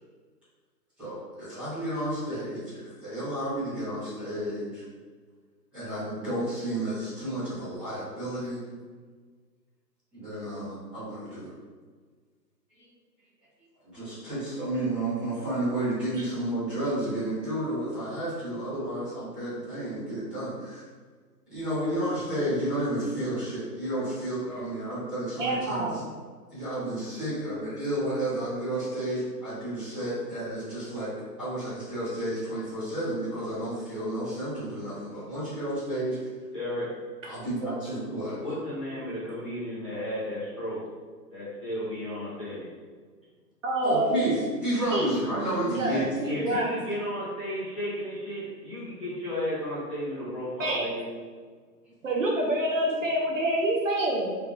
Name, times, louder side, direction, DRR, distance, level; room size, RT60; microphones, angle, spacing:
voice 1, 1.0-4.8 5.7-8.6 10.1-11.5 13.8-20.8 21.5-26.0 26.5-31.1 31.4-36.2 37.2-38.4 43.8-46.1, right 1 dB, ahead, -18 dB, 1.0 m, -31 dB
voice 2, 25.4-26.0 43.6-44.2 44.9-45.2 45.6-46.7 50.6-50.9 52.0-54.3, right 1 dB, 50° right, -2 dB, 0.6 m, -27 dB
voice 3, 36.5-36.9 38.4-40.8 41.3-42.7 45.9-51.1, equal, 20° left, -14 dB, 0.6 m, -33 dB
3.5 x 3.3 x 2.4 m, 1.5 s
hypercardioid pair, 165°, 50 cm